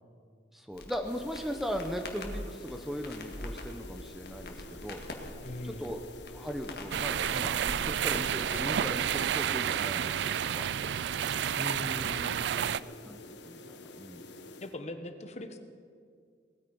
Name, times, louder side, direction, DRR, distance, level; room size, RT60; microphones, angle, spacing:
voice 1, 0.5-5.0 5.6-6.0 6.3-10.7 12.0-12.1 12.5-12.6 13.1-13.2 13.4-14.3, equal, ahead, 5 dB, 0.7 m, -38 dB
Crackle, 0.7-9.4, left 1 dB, 60° left, 1.8 m, -44 dB
sound 1, 1.0-14.8, left 2 dB, 90° left, 1.3 m, -49 dB
voice 2, 5.4-6.0 11.6-12.8 14.6-15.6, left 1 dB, 40° left, 8 dB, 1.1 m, -40 dB
sound 2, 6.9-12.8, right 9 dB, 85° right, 0.4 m, -30 dB
19.0 x 13.5 x 5.4 m, 2.2 s
head